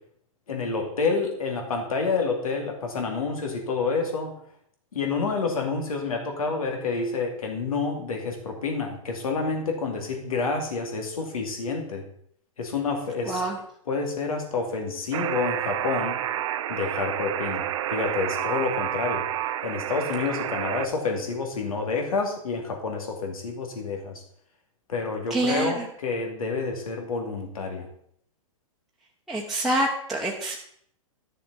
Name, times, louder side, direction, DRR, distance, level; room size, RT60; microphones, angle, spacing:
voice 1, 0.5-4.3 4.9-12.0 12.6-13.4 13.9-16.2 16.7-19.3 19.6-24.2 24.9-27.9, left 4 dB, 85° left, 2 dB, 2.6 m, -28 dB
voice 2, 13.2-13.6 25.3-25.8 29.3-30.6, right 1 dB, ahead, -4 dB, 1.1 m, -26 dB
Alarm, 15.1-20.9, right 12 dB, 65° right, 0.7 m, -29 dB
11.5 x 6.7 x 4.1 m, 0.66 s
hypercardioid pair, 125°, 18 cm